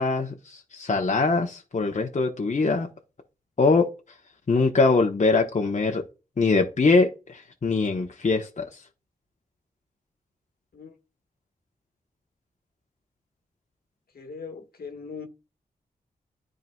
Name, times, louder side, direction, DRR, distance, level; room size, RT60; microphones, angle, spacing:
voice 1, 0.0-2.9 3.6-3.9 4.5-6.0 6.4-8.8, left 3 dB, 45° left, 1.1 m, -23 dB
voice 2, 14.1-15.3, left 5 dB, 70° left, 1.5 m, -39 dB
10.5 x 3.9 x 2.4 m
cardioid pair, 50°, 16 cm